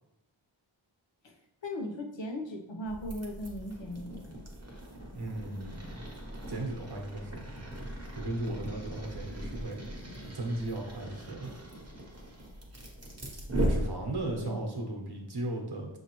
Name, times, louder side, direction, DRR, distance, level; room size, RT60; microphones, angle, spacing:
voice 1, 1.6-4.2 14.4-14.6, left 1 dB, 65° left, 2 dB, 0.8 m, -38 dB
sound 1, 2.9-14.4, right 1 dB, 30° right, 1.0 m, -38 dB
voice 2, 5.1-6.0 6.5-7.4 8.1-9.8 10.2-11.6 13.7-16.0, right 1 dB, 50° right, 1 dB, 1.0 m, -36 dB
6.1 x 2.7 x 3.0 m, 0.92 s
wide cardioid pair, 45°, 49 cm